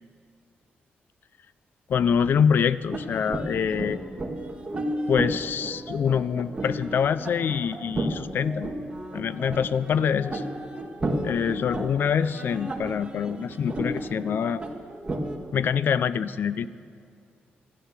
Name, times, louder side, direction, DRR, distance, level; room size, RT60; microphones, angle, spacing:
voice 1, 1.9-4.0 5.1-8.7 9.1-10.4 11.2-14.6 15.5-16.7, left 7 dB, 60° left, 16 dB, 0.4 m, -25 dB
sound 1, 2.9-15.4, right 1 dB, 25° right, 1.7 m, -33 dB
12.5 x 11.5 x 7.3 m, 2.4 s
cardioid pair, 95°, 4 cm